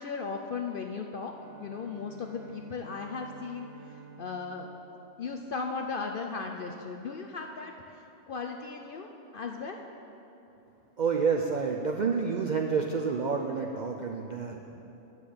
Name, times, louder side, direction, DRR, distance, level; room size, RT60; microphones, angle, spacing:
voice 1, 0.0-1.3 1.6-4.7 5.2-9.8, left 4 dB, 60° left, 3 dB, 0.6 m, -37 dB
Bowed string instrument, 1.2-6.1, right 6 dB, 85° right, 1.2 m, -52 dB
voice 2, 11.0-14.8, right 5 dB, 60° right, 2 dB, 0.4 m, -29 dB
9.6 x 7.5 x 6.7 m, 3.0 s
omnidirectional pair, 1.4 m